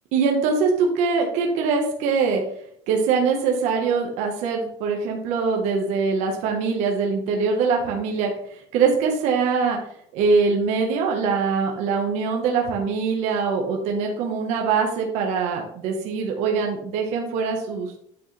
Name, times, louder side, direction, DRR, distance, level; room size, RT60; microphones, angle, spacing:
voice 1, 0.1-2.4 2.9-8.3 8.7-9.8 10.1-18.0, right 5 dB, 55° right, 1 dB, 1.6 m, -23 dB
9.3 x 6.6 x 3.5 m, 0.67 s
cardioid pair, 170°, 14 cm